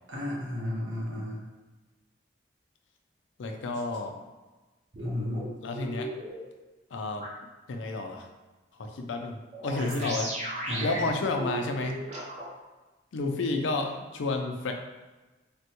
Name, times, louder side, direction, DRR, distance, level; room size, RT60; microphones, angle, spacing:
voice 1, 0.1-1.4 5.0-5.5 9.7-10.1 10.7-11.0, left 1 dB, 85° right, -4 dB, 0.9 m, -33 dB
voice 2, 3.4-4.2 5.6-6.1 6.9-7.3 7.7-8.3 8.8-10.3 10.8-12.0 13.1-14.7, left 3 dB, 85° left, 4 dB, 0.4 m, -31 dB
sound 1, 4.9-6.4 7.2-7.3 9.5-12.5, right 1 dB, 35° right, 0.5 m, -36 dB
3.4 x 2.2 x 2.8 m, 1.2 s
head